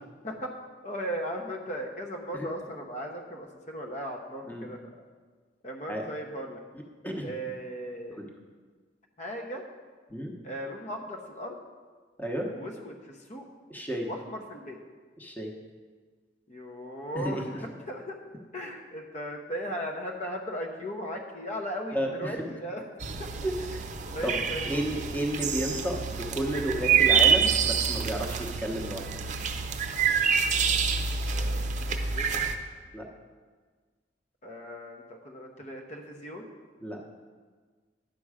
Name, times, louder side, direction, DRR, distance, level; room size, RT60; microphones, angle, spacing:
voice 1, 0.8-5.0 5.6-6.6 7.2-8.2 9.2-9.6 10.4-11.6 12.5-13.5 14.1-14.8 16.5-18.2 18.5-22.9 23.2-23.3 24.1-25.1 31.2-32.4 34.4-36.5, equal, 40° left, 1 dB, 0.9 m, -37 dB
voice 2, 12.2-12.5 13.7-14.1 15.2-15.5 17.1-17.4 21.9-22.4 23.4-23.9 24.2-24.4 24.7-29.1 32.9-33.1 36.8-37.0, right 1 dB, 10° left, 0 dB, 1.0 m, -32 dB
sound 1, 23.0-32.5, right 6 dB, 40° right, 0.6 m, -27 dB
10.5 x 6.9 x 4.9 m, 1.5 s
head